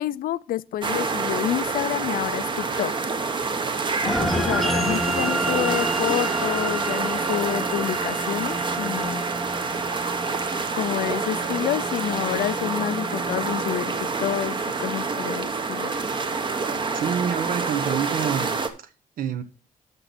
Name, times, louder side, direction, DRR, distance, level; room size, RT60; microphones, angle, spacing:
voice 1, 0.0-2.9 4.0-9.2 10.7-15.9, left 12 dB, 75° left, 0.4 m, -28 dB
sound 1, 0.8-18.7, right 4 dB, 30° right, 0.9 m, -27 dB
sound 2, 4.0-14.7, right 1 dB, ahead, 0.7 m, -31 dB
voice 2, 16.9-18.9 19.2-19.4, right 8 dB, 70° right, 1.0 m, -27 dB
12.5 x 5.4 x 4.2 m
wide cardioid pair, 155°, 15 cm